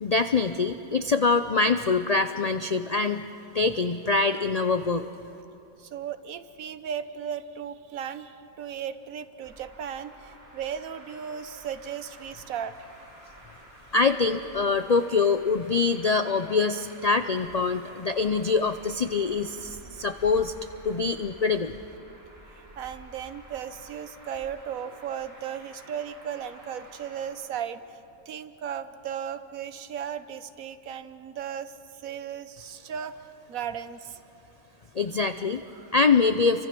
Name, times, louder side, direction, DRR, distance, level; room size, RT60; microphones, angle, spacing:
voice 1, 0.0-3.2 3.5-5.1 13.9-20.5 20.8-21.7 34.9-35.6 35.9-36.7, left 4 dB, 60° left, 9 dB, 0.4 m, -24 dB
voice 2, 5.8-12.9 22.8-28.0 28.3-31.8 32.0-34.2 35.7-35.9, right 8 dB, 70° right, 12 dB, 1.3 m, -36 dB
Traffic noise roadway noise, 9.4-27.3, right 1 dB, 45° right, 7.3 m, -50 dB
29.5 x 24.5 x 6.0 m, 2.9 s
omnidirectional pair, 1.5 m